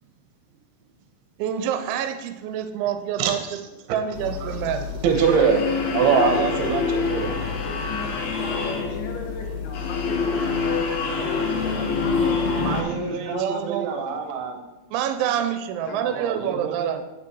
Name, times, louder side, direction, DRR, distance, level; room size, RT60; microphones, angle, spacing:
voice 1, 1.4-3.4 3.9-5.0 13.3-13.9 14.9-17.0, right 9 dB, 85° right, 8 dB, 3.0 m, -27 dB
voice 2, 3.2-3.6 4.1-5.7 5.9-7.3 12.6-14.6 16.0-16.9, right 6 dB, 70° right, 5 dB, 2.7 m, -24 dB
sound 1, 4.1-12.8, left 4 dB, 90° left, 1.5 m, -26 dB
voice 3, 7.3-14.2 15.9-16.2, left 3 dB, 65° left, 0 dB, 2.1 m, -38 dB
9.5 x 6.5 x 4.5 m, 1.0 s
omnidirectional pair, 5.3 m